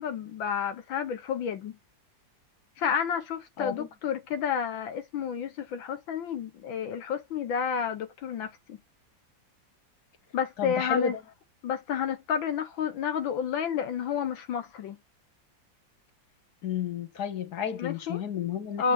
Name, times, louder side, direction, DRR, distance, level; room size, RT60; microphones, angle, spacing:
voice 1, 0.0-1.8 2.8-8.8 10.3-11.1 11.6-15.0 17.8-18.2 18.8-18.9, left 7 dB, 85° left, 1.8 m, -30 dB
voice 2, 3.6-3.9 10.6-11.2 16.6-18.9, left 7 dB, 55° left, 2.0 m, -32 dB
8.8 x 5.6 x 2.6 m
omnidirectional pair, 2.1 m